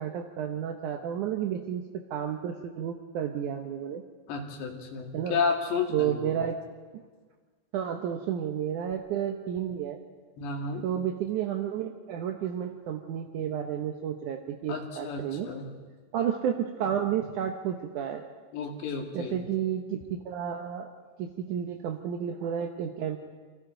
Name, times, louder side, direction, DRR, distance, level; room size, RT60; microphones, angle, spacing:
voice 1, 0.0-4.0 5.1-5.4 5.9-6.6 6.9-7.0 7.7-10.0 10.8-15.5 16.1-18.3 19.1-20.9 21.2-23.2, right 9 dB, 75° right, 4 dB, 1.8 m, -31 dB
voice 2, 4.3-6.4 10.4-10.9 14.7-15.7 18.5-19.4, left 5 dB, 85° left, 2 dB, 4.3 m, -32 dB
29.5 x 24.5 x 3.9 m, 1.5 s
omnidirectional pair, 4.9 m